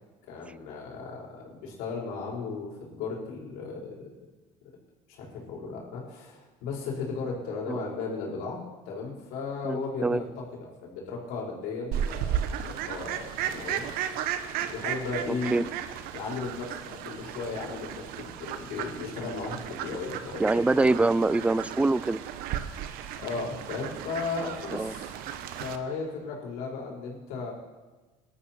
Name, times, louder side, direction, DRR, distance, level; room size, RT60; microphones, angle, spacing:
voice 1, 0.3-4.3 5.1-13.9 14.6-15.7 16.1-20.4 22.7-25.1 25.6-27.5, left 4 dB, 75° left, -3 dB, 5.2 m, -36 dB
voice 2, 9.6-10.2 15.5-15.6 20.4-22.2 24.7-24.9, right 3 dB, 10° right, 18 dB, 0.4 m, -24 dB
Fowl, 11.9-25.8, right 9 dB, 70° right, 1.2 m, -35 dB
19.5 x 12.5 x 4.5 m, 1.2 s
supercardioid pair, 95°, 16 cm